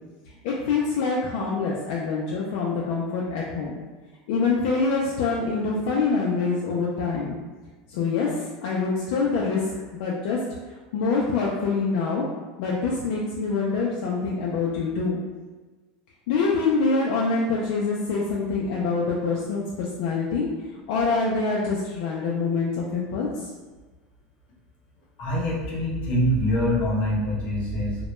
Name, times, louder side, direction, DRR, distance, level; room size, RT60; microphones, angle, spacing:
voice 1, 0.4-3.7 4.3-7.4 7.9-9.7 10.0-10.4 10.9-12.3 12.6-15.2 16.3-20.5 20.9-23.5, left 4 dB, 70° left, -4 dB, 0.4 m, -25 dB
voice 2, 25.2-28.0, equal, 40° left, -4 dB, 0.7 m, -24 dB
2.2 x 2.1 x 2.9 m, 1.3 s
supercardioid pair, 155°, 4 cm